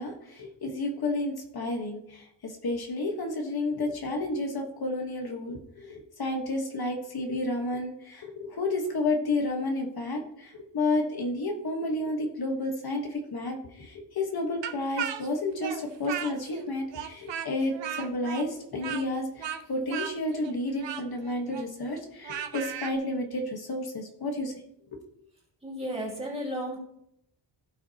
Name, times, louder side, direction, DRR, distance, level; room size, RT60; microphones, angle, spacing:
voice 1, 0.0-24.5, left 2 dB, 55° left, 2 dB, 1.4 m, -31 dB
Speech, 14.6-16.6 16.9-22.9, right 9 dB, 70° right, 0.8 m, -36 dB
voice 2, 25.6-26.8, equal, 15° right, -3 dB, 2.8 m, -33 dB
16.5 x 5.8 x 2.9 m, 0.75 s
wide cardioid pair, 145°, 44 cm